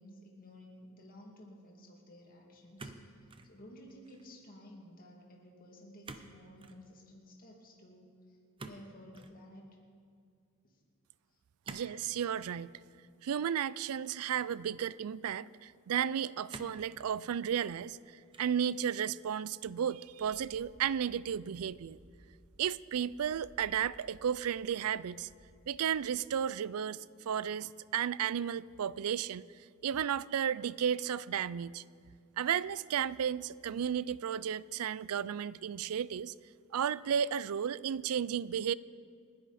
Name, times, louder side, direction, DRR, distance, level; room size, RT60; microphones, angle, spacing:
voice 1, 0.0-9.7 10.6-10.8, equal, 40° left, -1 dB, 2.5 m, -54 dB
sound 1, 2.8-3.5 3.9-4.3 6.0-6.3 6.6-6.8 8.6-9.4 11.6-12.0 12.4-12.6 13.5-14.3 15.0-15.1 16.5-16.9 17.5-18.0 18.3-18.7, right 3 dB, 25° right, 0.8 m, -49 dB
voice 2, 11.7-12.8 13.2-18.0 18.4-22.0 22.6-25.3 25.7-29.5 29.8-31.8 32.4-36.3 36.7-38.7, right 8 dB, 75° right, 20 dB, 0.4 m, -33 dB
sound 2, 19.2-19.3 19.5-19.6 20.1-26.2, right 1 dB, 45° right, 1.3 m, -62 dB
29.5 x 10.0 x 4.2 m, 2.2 s
head